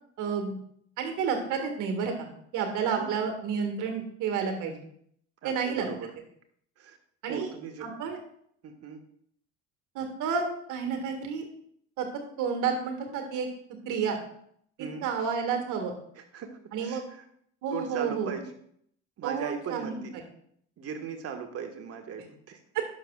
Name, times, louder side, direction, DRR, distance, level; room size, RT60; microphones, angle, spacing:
voice 1, 0.2-0.5 1.0-4.7 5.4-5.9 7.2-7.5 7.8-8.2 9.9-10.4 10.7-11.4 12.0-12.1 12.4-13.5 13.9-14.2 14.8-15.9 16.7-17.0 17.6-18.3 19.2-20.0, right 6 dB, 60° right, 4 dB, 2.0 m, -30 dB
voice 2, 5.4-6.1 6.8-7.0 7.3-7.9 8.6-9.0 14.8-15.1 16.1-16.5 16.8-17.2 17.7-18.4 19.2-20.2 20.8-22.6, right 6 dB, 45° right, 4 dB, 1.6 m, -38 dB
11.0 x 6.7 x 2.4 m, 0.67 s
hypercardioid pair, 65°, 35 cm